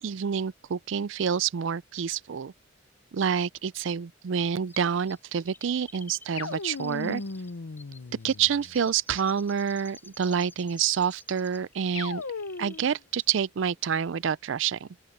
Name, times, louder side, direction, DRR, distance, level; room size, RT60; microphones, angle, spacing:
voice 1, 0.0-2.5 3.1-7.2 8.2-12.2 12.6-14.9, right 7 dB, 70° right, 0.4 m, -28 dB
Chirp tweet, 4.7-11.7 12.0-13.0 13.2-13.3, left 3 dB, 10° left, 7.6 m, -52 dB
sound 1, 6.4-8.8 11.9-13.0, left 4 dB, 85° left, 0.8 m, -37 dB
open air
head